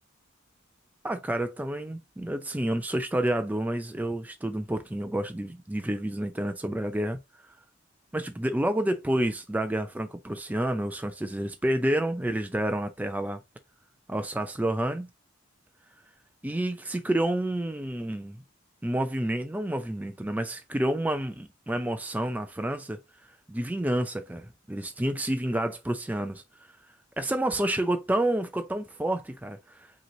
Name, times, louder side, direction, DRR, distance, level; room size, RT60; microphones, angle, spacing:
voice 1, 1.0-7.2 8.1-13.4 14.1-15.1 16.4-18.4 18.8-23.0 23.5-26.7 27.2-30.0, right 1 dB, 10° right, 0.3 m, -29 dB
5.2 x 3.0 x 3.0 m
head